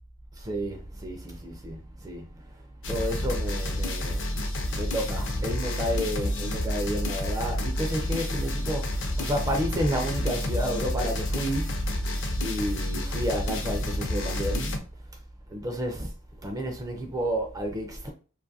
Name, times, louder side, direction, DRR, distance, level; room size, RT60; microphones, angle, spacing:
voice 1, 0.4-2.4 2.9-4.2 4.7-11.8 12.4-14.8 15.5-16.1 16.4-18.1, equal, 15° right, 0.3 m, -31 dB
sound 1, 2.8-14.8, left 1 dB, 55° left, 0.5 m, -29 dB
2.5 x 2.3 x 2.6 m
head